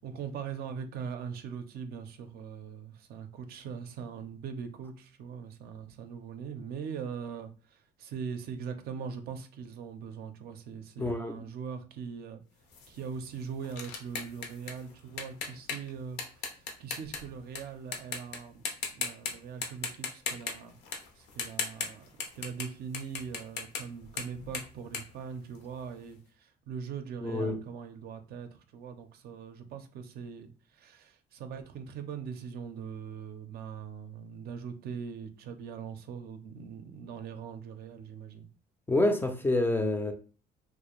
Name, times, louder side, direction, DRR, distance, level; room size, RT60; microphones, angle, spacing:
voice 1, 0.0-12.4 12.9-16.4 16.8-18.6 18.9-20.7 21.2-38.5, right 6 dB, 65° right, 0.4 m, -41 dB
voice 2, 11.0-11.4 27.2-27.6 38.9-40.1, left 2 dB, 15° left, 0.3 m, -27 dB
sound 1, 12.7-17.6 17.9-18.4 18.6-19.3 19.6-22.7 22.9-25.9, left 5 dB, 90° left, 0.6 m, -37 dB
2.4 x 2.0 x 2.9 m
cardioid pair, 110°, 17 cm